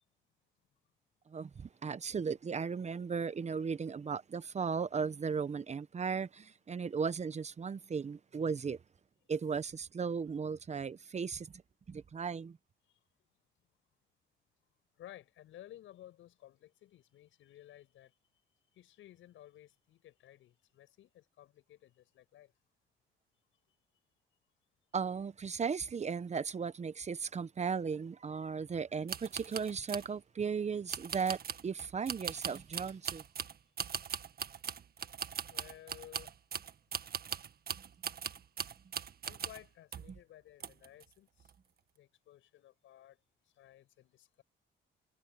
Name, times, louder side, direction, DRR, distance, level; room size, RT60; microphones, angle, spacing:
voice 1, 1.3-8.8 9.3-11.5 11.9-12.6 24.9-33.2, right 5 dB, 35° right, 0.9 m, -36 dB
voice 2, 15.0-18.1 18.7-22.5 35.5-36.3 39.2-41.5 42.0-43.2 43.6-44.4, left 13 dB, 80° left, 7.6 m, -56 dB
sound 1, 29.1-30.1 30.9-39.7 39.9-40.2 40.6-41.0 41.4-41.5, right 7 dB, 50° right, 1.8 m, -40 dB
cardioid pair, 90°, 20 cm